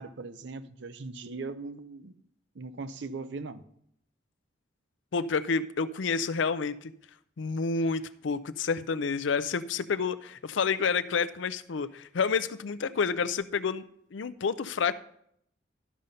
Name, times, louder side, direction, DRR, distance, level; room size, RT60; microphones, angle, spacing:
voice 1, 0.0-2.1 2.5-3.6, right 3 dB, 65° right, 12 dB, 0.6 m, -39 dB
voice 2, 5.1-6.9 7.4-13.8 14.1-14.9, left 5 dB, 75° left, 15 dB, 0.5 m, -29 dB
12.5 x 5.6 x 5.2 m, 0.70 s
head